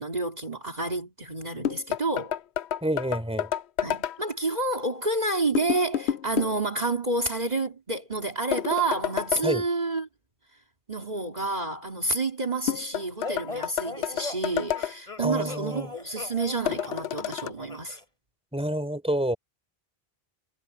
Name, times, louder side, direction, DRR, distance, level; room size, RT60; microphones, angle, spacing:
voice 1, 0.0-2.4 3.8-10.1 10.9-18.0, right 2 dB, 40° right, 2.7 m, -29 dB
sound 1, 1.6-4.2 5.5-6.6 8.5-9.5 12.7-14.9 16.7-17.5, left 9 dB, 85° left, 0.8 m, -29 dB
voice 2, 2.8-3.5 9.4-9.7 15.2-15.9 18.5-19.4, right 1 dB, 5° right, 4.0 m, -28 dB
sound 2, 13.2-18.0, left 3 dB, 35° left, 3.6 m, -39 dB
omnidirectional pair, 1.1 m